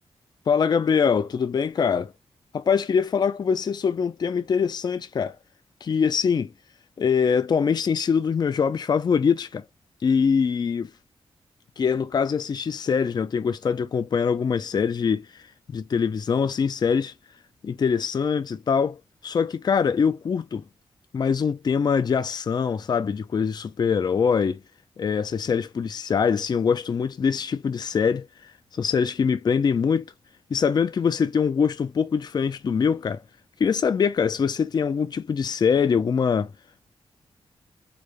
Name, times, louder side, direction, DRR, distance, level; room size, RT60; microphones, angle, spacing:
voice 1, 0.5-2.1 2.5-5.4 5.8-6.5 7.0-9.6 10.0-10.9 11.8-15.4 15.7-17.1 17.6-20.6 21.1-24.6 25.0-28.3 28.8-30.0 30.5-33.2 33.6-36.5, left 6 dB, 40° left, 0.4 m, -23 dB
3.9 x 2.1 x 3.0 m
wide cardioid pair, 120°, 10 cm